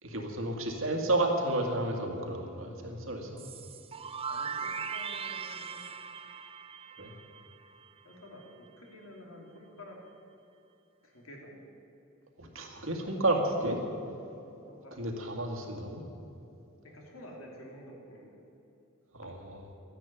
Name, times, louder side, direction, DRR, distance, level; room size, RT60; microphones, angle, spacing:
voice 1, 0.0-3.3 7.0-7.1 12.4-13.8 15.0-16.0 19.1-19.6, right 2 dB, 75° right, 2 dB, 2.2 m, -31 dB
sound 1, 3.4-8.1, right 6 dB, 25° right, 0.5 m, -39 dB
voice 2, 4.3-6.0 8.0-10.0 11.0-11.6 14.7-15.3 16.8-18.4, left 1 dB, 80° left, 0 dB, 3.1 m, -50 dB
12.5 x 10.5 x 9.3 m, 2.8 s
head